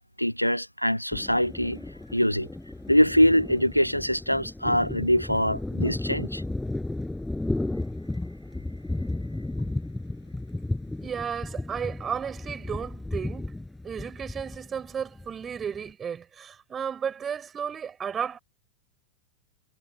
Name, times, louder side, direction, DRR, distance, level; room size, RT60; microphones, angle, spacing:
voice 1, 0.2-1.8 2.1-2.5 2.9-6.4, equal, 90° left, 1.4 m, -23 dB
Thunder, 1.1-15.9, left 2 dB, 5° left, 7.6 m, -34 dB
voice 2, 11.0-13.6 13.8-18.4, right 7 dB, 20° right, 5.7 m, -33 dB
figure-of-eight pair, 90°, 0 cm